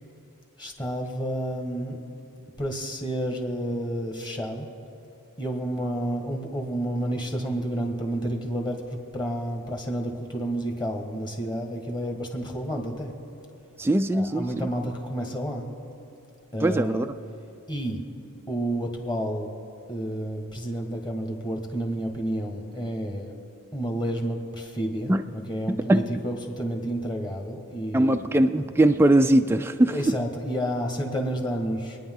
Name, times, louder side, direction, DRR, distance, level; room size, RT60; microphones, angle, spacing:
voice 1, 0.6-2.0 2.6-4.7 5.4-8.8 9.1-13.1 14.1-15.7 16.5-17.1 17.7-18.0 18.5-19.5 19.9-23.3 23.7-28.1 29.9-32.0, right 1 dB, 20° left, 2 dB, 1.7 m, -30 dB
voice 2, 13.8-14.7 16.6-17.1 25.1-25.2 25.7-26.2 27.9-29.9, right 1 dB, 10° right, 6 dB, 0.3 m, -21 dB
27.0 x 10.0 x 3.8 m, 2.7 s
head